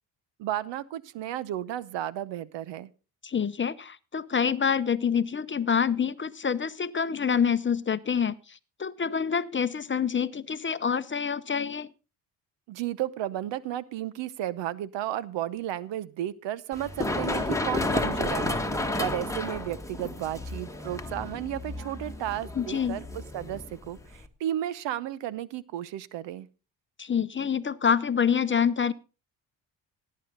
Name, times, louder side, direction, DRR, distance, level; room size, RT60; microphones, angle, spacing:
voice 1, 0.4-2.9 12.7-26.5, right 12 dB, 75° right, 19 dB, 0.9 m, -33 dB
voice 2, 3.2-11.9 22.6-23.0 27.0-28.9, left 7 dB, 25° left, 14 dB, 0.7 m, -27 dB
Run, 16.7-24.3, left 2 dB, 5° left, 1.6 m, -32 dB
17.5 x 8.6 x 3.9 m, 0.33 s
supercardioid pair, 65°, 44 cm